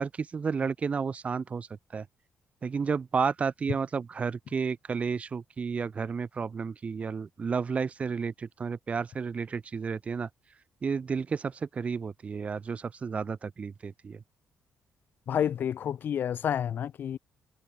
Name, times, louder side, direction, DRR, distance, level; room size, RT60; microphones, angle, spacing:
voice 1, 0.0-1.7 1.9-2.0 2.6-10.3 10.8-14.2, right 5 dB, 30° right, 2.1 m, -32 dB
voice 2, 15.3-17.2, left 9 dB, 50° left, 0.9 m, -29 dB
cardioid pair, 155°, 4 cm